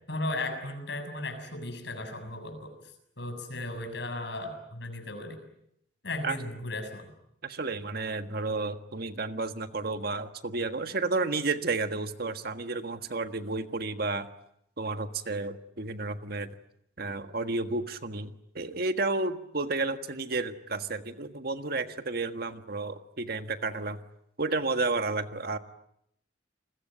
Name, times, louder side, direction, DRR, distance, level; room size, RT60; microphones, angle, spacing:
voice 1, 0.1-2.7 3.2-5.4 6.0-7.1, left 2 dB, 65° left, 6 dB, 7.0 m, -36 dB
voice 2, 7.4-14.3 14.8-16.5 17.0-24.0 24.4-25.6, right 3 dB, 55° right, 9 dB, 1.6 m, -31 dB
29.5 x 21.5 x 9.1 m, 0.76 s
head